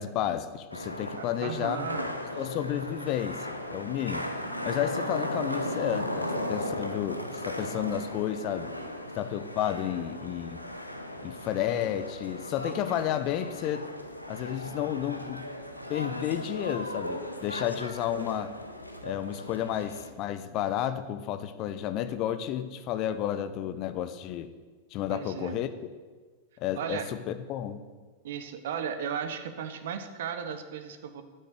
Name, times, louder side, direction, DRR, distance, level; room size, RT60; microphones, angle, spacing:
voice 1, 0.0-1.9 2.4-4.3 4.6-8.7 9.2-10.6 11.2-13.9 14.3-15.5 15.9-18.5 19.0-24.5 24.9-25.7 26.6-27.8, left 11 dB, 40° left, 12 dB, 0.8 m, -31 dB
sound 1, 0.7-20.1, left 1 dB, 85° left, 0.9 m, -36 dB
voice 2, 1.2-2.1 25.1-25.6 26.8-27.1 28.2-31.2, right 7 dB, 55° right, 9 dB, 1.0 m, -35 dB
10.0 x 6.5 x 8.2 m, 1.4 s
figure-of-eight pair, 90°, 0 cm